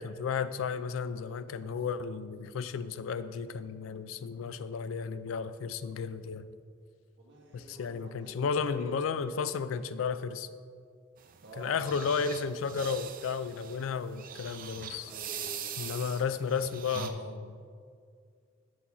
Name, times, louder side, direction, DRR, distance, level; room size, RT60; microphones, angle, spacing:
voice 1, 0.0-6.5 7.5-10.5 11.6-15.1 15.8-17.6, left 6 dB, 85° left, 13 dB, 0.3 m, -33 dB
voice 2, 7.2-8.4 8.7-8.9 11.4-11.9 15.0-16.2, right 1 dB, 65° right, -3 dB, 1.6 m, -48 dB
sound 1, 11.2-17.1, right 8 dB, 45° right, 0.5 m, -42 dB
6.3 x 5.6 x 4.7 m, 2.2 s
head